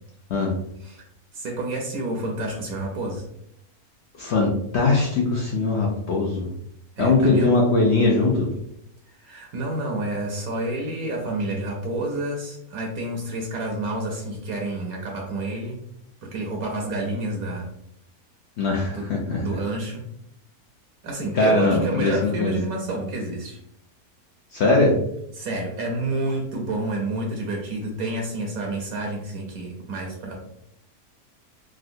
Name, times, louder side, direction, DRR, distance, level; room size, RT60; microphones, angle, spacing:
voice 1, 1.3-3.2 7.0-7.5 9.1-15.8 16.2-17.7 18.9-19.1 19.4-20.0 21.0-23.6 25.4-30.4, right 2 dB, 70° right, 1 dB, 1.0 m, -29 dB
voice 2, 4.2-6.5 7.0-8.5 18.6-19.4 21.3-22.5 24.5-25.0, left 3 dB, 70° left, -2 dB, 0.6 m, -21 dB
3.6 x 2.1 x 2.5 m, 0.74 s
omnidirectional pair, 1.6 m